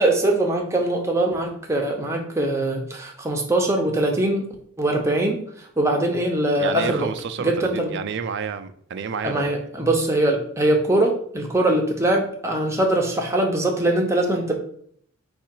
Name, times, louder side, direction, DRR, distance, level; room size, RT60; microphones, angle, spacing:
voice 1, 0.0-4.5 4.8-7.1 7.4-7.9 9.2-14.5, right 1 dB, 15° right, 1 dB, 0.6 m, -22 dB
voice 2, 6.6-9.5, right 6 dB, 55° right, 10 dB, 0.3 m, -30 dB
4.7 x 2.4 x 4.3 m, 0.62 s
head